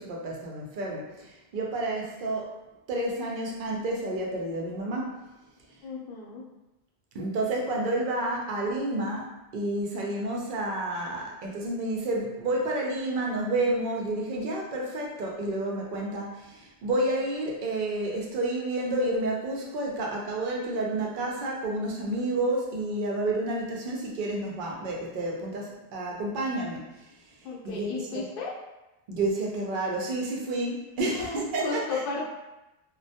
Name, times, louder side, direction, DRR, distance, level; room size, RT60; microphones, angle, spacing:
voice 1, 0.0-2.6 2.9-5.2 7.1-26.9 27.6-28.2 29.1-32.0, right 2 dB, 60° right, -2 dB, 0.6 m, -30 dB
voice 2, 5.8-6.4 27.4-28.6 31.1-32.2, left 4 dB, 65° left, -2 dB, 0.7 m, -34 dB
2.1 x 2.1 x 2.7 m, 0.97 s
omnidirectional pair, 1.0 m